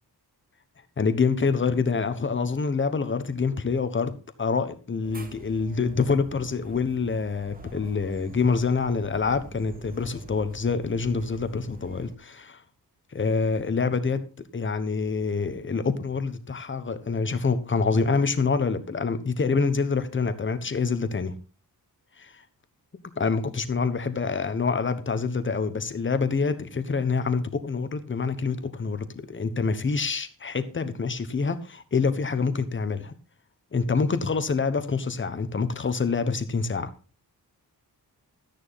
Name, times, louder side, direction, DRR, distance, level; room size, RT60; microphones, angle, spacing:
voice 1, 1.0-4.1 4.4-12.6 13.1-14.2 14.5-21.3 22.2-22.4 23.2-33.1 33.7-36.9, left 4 dB, 30° left, 1.1 m, -26 dB
sound 1, 5.0-12.1, right 2 dB, 20° right, 1.3 m, -46 dB
13.5 x 10.0 x 4.1 m
wide cardioid pair, 170°, 38 cm